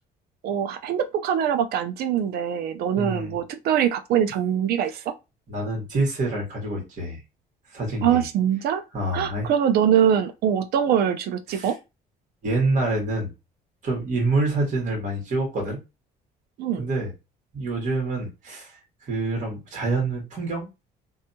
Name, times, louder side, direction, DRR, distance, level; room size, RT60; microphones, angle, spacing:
voice 1, 0.4-5.1 8.0-8.8 9.1-11.8 16.6-16.9, right 9 dB, 70° right, 0.4 m, -23 dB
voice 2, 3.0-3.4 5.5-7.2 7.7-8.2 8.9-9.5 11.5-11.7 12.4-13.3 13.8-15.8 16.8-17.1 17.5-20.7, right 2 dB, 50° right, 1.4 m, -26 dB
2.6 x 2.3 x 2.7 m
cardioid pair, 110°, 17 cm